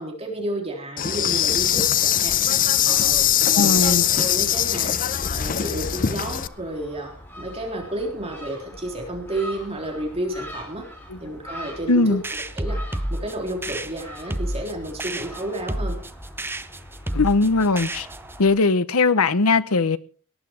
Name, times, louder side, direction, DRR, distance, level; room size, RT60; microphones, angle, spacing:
voice 1, 0.0-2.4 2.8-5.0 5.3-10.9 11.2-12.8 13.1-16.0, right 1 dB, 30° right, 3.6 m, -31 dB
Insect, 1.0-6.5, left 10 dB, 40° left, 0.6 m, -21 dB
voice 2, 3.6-4.0 11.9-12.2 17.1-18.1 18.4-20.0, left 3 dB, 70° left, 0.9 m, -19 dB
Gull seagull, 4.0-18.6, equal, 10° left, 5.4 m, -43 dB
sound 1, 12.2-18.4, right 1 dB, 10° right, 0.7 m, -30 dB
18.5 x 11.0 x 4.7 m
head